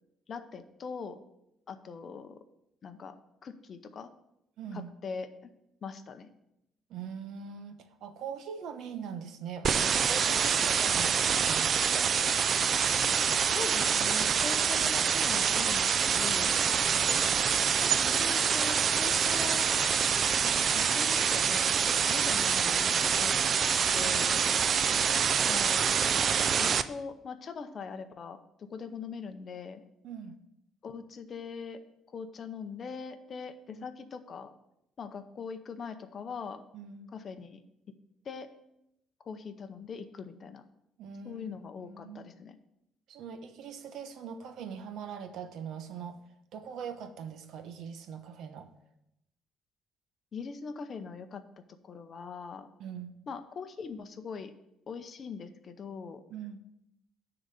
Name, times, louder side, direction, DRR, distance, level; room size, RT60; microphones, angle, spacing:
voice 1, 0.3-1.2 1.7-2.4 2.8-3.1 3.4-4.1 4.7-5.5 5.8-6.3 13.5-17.2 17.6-19.8 20.7-23.5 23.9-24.4 25.4-25.8 26.6-29.8 30.8-31.8 32.1-34.5 35.0-36.6 37.1-37.6 38.2-38.5 39.2-40.6 41.2-42.6 50.3-51.4 51.8-52.7 53.3-54.5 54.9-56.2, left 5 dB, 35° left, 9 dB, 0.7 m, -41 dB
voice 2, 4.6-4.9 6.9-12.1 24.0-25.5 30.0-30.4 33.7-33.9 36.7-37.1 41.0-42.3 43.1-46.2 46.5-48.7 52.8-53.1 56.3-56.6, right 7 dB, 65° right, 9 dB, 0.8 m, -42 dB
sound 1, 9.6-26.8, right 7 dB, 40° right, 0.3 m, -26 dB
10.0 x 3.9 x 6.4 m, 0.82 s
cardioid pair, 150°, 0 cm